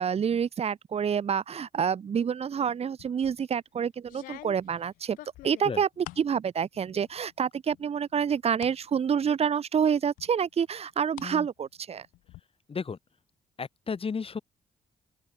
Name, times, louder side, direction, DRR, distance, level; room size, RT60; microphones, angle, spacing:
voice 1, 0.0-5.2 5.4-12.1, right 7 dB, 50° right, 0.9 m, -28 dB
sound 1, 3.0-3.4 4.0-6.3 6.7-7.3 7.7-8.8 9.2-9.3 10.2-11.3 11.6-12.4, left 17 dB, 80° left, 6.3 m, -47 dB
voice 2, 13.6-14.4, left 5 dB, 40° left, 2.3 m, -33 dB
open air
hypercardioid pair, 50°, 14 cm